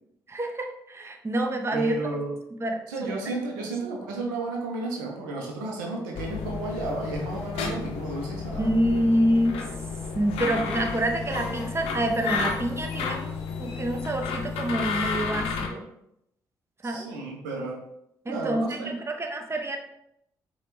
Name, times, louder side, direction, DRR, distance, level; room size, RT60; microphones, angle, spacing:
voice 1, 0.3-1.9 2.6-3.7 8.6-9.6 10.1-15.9 16.8-17.1 18.2-19.8, right 1 dB, 25° right, 3 dB, 0.7 m, -27 dB
voice 2, 1.7-2.3 2.9-8.7 16.8-17.8 18.3-18.9, right 3 dB, 90° right, 0 dB, 0.6 m, -32 dB
sound 1, 6.1-15.7, left 5 dB, 75° left, 0.5 m, -32 dB
4.8 x 2.3 x 3.0 m, 0.77 s
hypercardioid pair, 40°, 10 cm